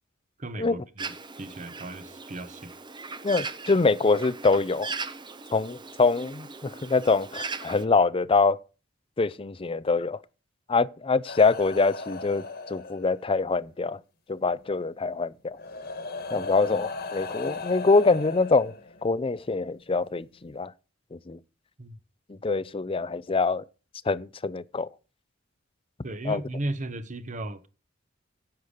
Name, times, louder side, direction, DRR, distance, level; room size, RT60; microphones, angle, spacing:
voice 1, 0.4-1.1 1.4-2.7 16.4-16.5 21.8-21.9 26.0-27.7, right 1 dB, 40° right, 1.1 m, -35 dB
Bird, 1.0-7.9, right 4 dB, 25° right, 0.8 m, -39 dB
voice 2, 3.2-4.9 5.5-8.6 9.2-10.2 10.7-14.0 14.3-15.6 16.3-18.7 19.0-20.7 21.1-21.4 22.3-23.6 24.1-24.9 26.2-26.4, left 4 dB, 30° left, 0.5 m, -24 dB
sound 1, 11.3-13.4 14.7-14.8 15.6-19.2 20.2-20.4, left 3 dB, 55° left, 1.6 m, -37 dB
10.5 x 8.1 x 5.0 m
head